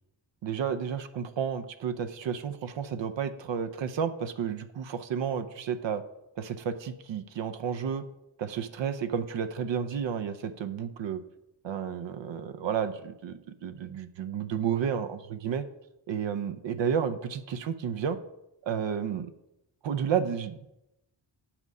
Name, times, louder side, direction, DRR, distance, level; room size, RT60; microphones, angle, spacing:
voice 1, 0.4-6.0 6.4-8.0 8.4-11.2 11.6-15.7 16.1-18.2 18.6-19.3 19.8-20.7, right 7 dB, 65° right, 10 dB, 0.7 m, -31 dB
7.9 x 5.9 x 5.3 m, 0.89 s
cardioid pair, 70°, 48 cm